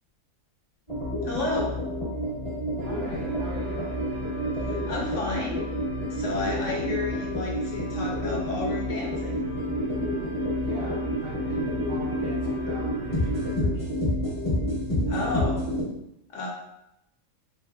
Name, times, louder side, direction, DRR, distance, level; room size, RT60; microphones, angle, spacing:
sound 1, 0.9-15.8, left 1 dB, 25° left, 1.1 m, -29 dB
voice 1, 1.2-1.8 4.6-5.6 6.1-9.5 15.1-15.7 16.3-16.5, left 3 dB, 65° left, -2 dB, 0.9 m, -32 dB
voice 2, 2.8-4.0 10.6-13.9, right 2 dB, 60° right, -4 dB, 0.9 m, -41 dB
sound 2, 2.8-13.6, right 4 dB, 90° right, 1.2 m, -39 dB
2.8 x 2.8 x 2.3 m, 0.83 s
omnidirectional pair, 1.5 m